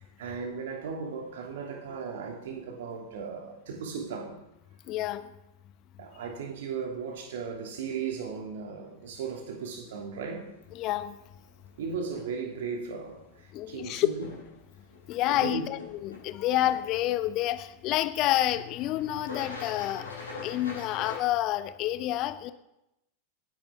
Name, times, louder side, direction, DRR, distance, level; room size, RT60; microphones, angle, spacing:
voice 1, 0.0-4.4 6.0-10.5 11.8-14.3 15.3-15.7, right 5 dB, 55° right, 2.7 m, -36 dB
voice 2, 4.9-5.3 10.7-11.1 13.5-14.1 15.1-20.1 20.4-22.5, left 14 dB, 40° left, 0.9 m, -28 dB
sound 1, 10.1-21.2, left 4 dB, 80° left, 6.0 m, -45 dB
27.0 x 10.5 x 3.7 m
figure-of-eight pair, 90°, 0 cm